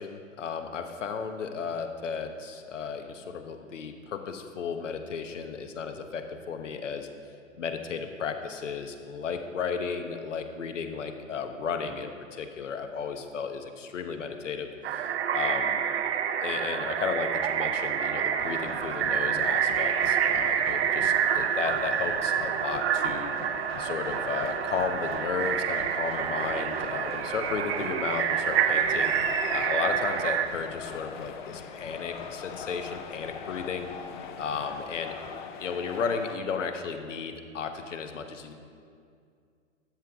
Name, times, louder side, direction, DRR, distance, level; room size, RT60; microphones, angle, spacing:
voice 1, 0.0-7.1 7.6-15.8 16.4-23.3 23.8-29.1 29.5-33.9 34.4-35.2 35.6-38.5, left 6 dB, 70° left, 7 dB, 1.1 m, -34 dB
sound 1, 14.8-30.5, right 8 dB, 55° right, 0.7 m, -28 dB
sound 2, 18.4-36.4, left 7 dB, 40° left, 0.7 m, -41 dB
13.0 x 7.9 x 3.5 m, 2.3 s
figure-of-eight pair, 120°, 39 cm